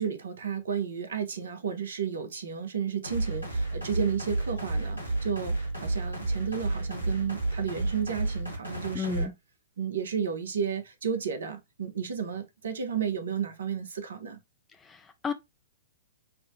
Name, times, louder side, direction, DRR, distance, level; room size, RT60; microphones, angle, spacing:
voice 1, 0.0-9.3 9.8-14.4, right 7 dB, 65° right, 0.7 m, -32 dB
sound 1, 3.0-9.2, right 2 dB, 90° left, 1.2 m, -31 dB
voice 2, 8.9-9.3 14.8-15.3, left 6 dB, 15° left, 0.4 m, -32 dB
3.4 x 2.1 x 2.6 m
figure-of-eight pair, 110°, 0 cm